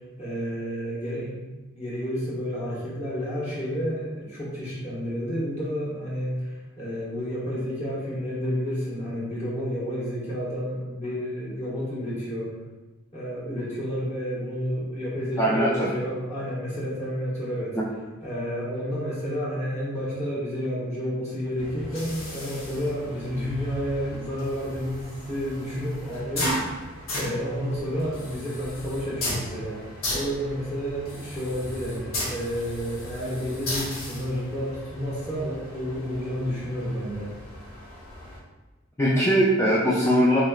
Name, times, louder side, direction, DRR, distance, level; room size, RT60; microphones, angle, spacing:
voice 1, 0.2-1.4 1.7-12.5 13.1-17.8 18.2-26.9 27.1-29.8 30.1-37.3, equal, 30° left, -8 dB, 1.3 m, -30 dB
voice 2, 15.4-15.9 17.7-17.8 39.0-40.4, equal, 15° left, -7 dB, 0.4 m, -21 dB
sound 1, 21.6-38.4, left 1 dB, 80° left, 0.9 m, -36 dB
3.9 x 3.1 x 2.3 m, 1.2 s
head